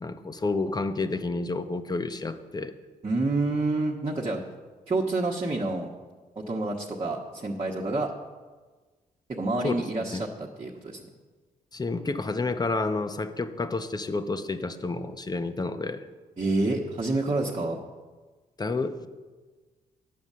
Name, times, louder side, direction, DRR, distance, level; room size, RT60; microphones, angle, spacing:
voice 1, 0.0-2.7 9.6-9.8 10.1-10.2 11.7-16.0 18.6-19.1, left 3 dB, 25° left, 9 dB, 0.8 m, -30 dB
voice 2, 3.0-4.4 4.9-5.9 6.4-8.1 9.3-11.0 16.4-17.8, right 2 dB, 35° right, -2 dB, 1.2 m, -28 dB
9.5 x 5.3 x 7.4 m, 1.3 s
supercardioid pair, 60°, 16 cm